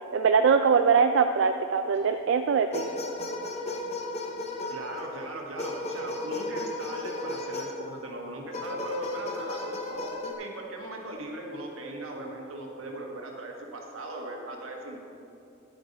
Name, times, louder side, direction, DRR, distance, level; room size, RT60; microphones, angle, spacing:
voice 1, 0.1-2.9, right 6 dB, 65° right, 7 dB, 0.3 m, -22 dB
sound 1, 1.9-2.3 2.7-5.1 5.6-7.9 8.5-10.3, left 2 dB, 30° left, 0.7 m, -35 dB
voice 2, 4.7-15.1, right 2 dB, 85° right, 0 dB, 1.4 m, -39 dB
10.5 x 9.2 x 3.9 m, 2.7 s
head